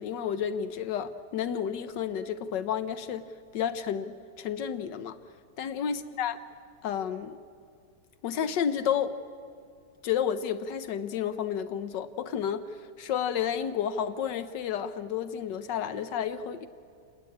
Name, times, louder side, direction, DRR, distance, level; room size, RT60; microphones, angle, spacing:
voice 1, 0.0-3.3 3.5-5.2 5.6-6.4 6.8-7.4 8.2-9.2 10.0-16.7, left 8 dB, 80° left, 11 dB, 1.4 m, -31 dB
29.0 x 19.5 x 8.5 m, 2.4 s
omnidirectional pair, 1.9 m